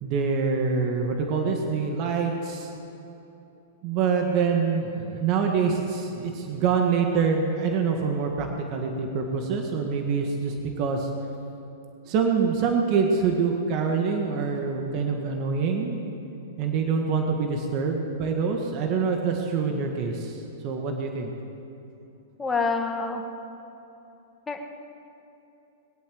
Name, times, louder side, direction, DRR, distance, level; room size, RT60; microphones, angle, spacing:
voice 1, 0.0-2.7 3.8-11.1 12.1-16.0 16.6-21.3, right 5 dB, 45° right, 2 dB, 1.7 m, -25 dB
voice 2, 22.4-23.2 24.5-24.6, left 4 dB, 15° left, 2 dB, 1.9 m, -27 dB
21.5 x 8.5 x 7.8 m, 2.9 s
hypercardioid pair, 120°, 0 cm